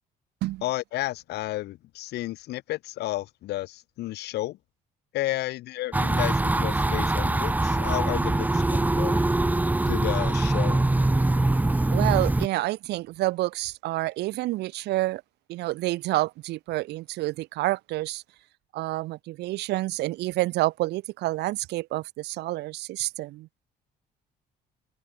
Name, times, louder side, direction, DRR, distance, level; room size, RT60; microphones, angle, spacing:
voice 1, 0.6-4.6 5.1-9.2 9.9-10.8, left 16 dB, 80° left, 7.4 m, -32 dB
sound 1, 5.9-12.5, right 2 dB, 10° right, 1.3 m, -23 dB
voice 2, 11.9-15.2 15.5-18.2 18.7-23.5, right 18 dB, 80° right, 1.3 m, -28 dB
cardioid pair, 110°, 17 cm